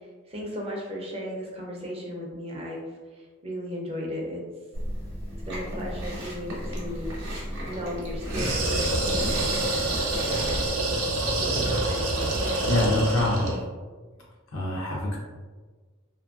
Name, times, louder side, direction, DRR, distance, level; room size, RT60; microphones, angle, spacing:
voice 1, 0.3-4.4 5.5-7.1 7.6-10.5 10.8-11.1 11.4-13.6, equal, 25° right, -2 dB, 0.5 m, -36 dB
Chewing mastication, 4.7-10.7, equal, 50° right, 0.9 m, -34 dB
sound 1, 8.3-13.6, right 2 dB, 75° right, 0.6 m, -26 dB
voice 2, 12.7-13.5 14.5-15.2, left 1 dB, 65° left, -4 dB, 0.6 m, -25 dB
2.7 x 2.6 x 2.3 m, 1.4 s
head